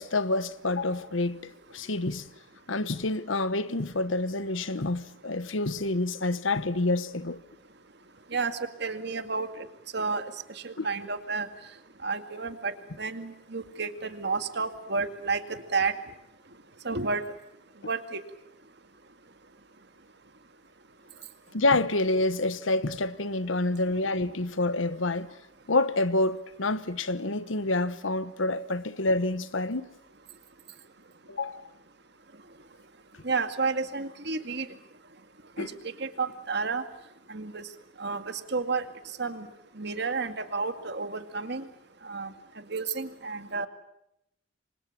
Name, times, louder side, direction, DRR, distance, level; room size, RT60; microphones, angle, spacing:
voice 1, 0.0-2.3 2.7-7.4 10.8-10.9 21.5-25.3 25.7-29.9 31.3-31.7 35.6-35.7, left 2 dB, 80° left, 1.2 m, -28 dB
voice 2, 8.3-9.7 9.9-11.5 12.0-15.9 16.8-17.2 17.9-18.2 33.2-34.7 35.6-35.7 36.0-36.8 37.3-37.7 38.0-38.9 39.2-39.5 39.8-41.7 42.0-42.3 42.7-43.7, right 4 dB, 60° right, 2.1 m, -31 dB
29.0 x 24.5 x 7.4 m
head